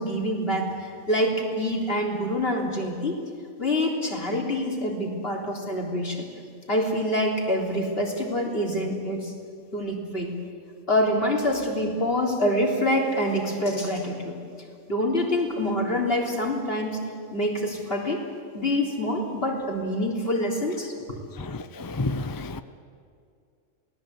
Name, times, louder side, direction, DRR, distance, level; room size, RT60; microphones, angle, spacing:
voice 1, 0.0-3.2 3.6-6.3 6.7-9.3 9.7-10.3 10.9-14.4 14.9-17.0 17.3-18.2 18.5-21.2, left 1 dB, 45° left, 0 dB, 3.7 m, -26 dB
voice 2, 21.4-22.6, left 2 dB, 25° left, 11 dB, 0.4 m, -30 dB
28.0 x 19.0 x 8.3 m, 2.3 s
omnidirectional pair, 1.4 m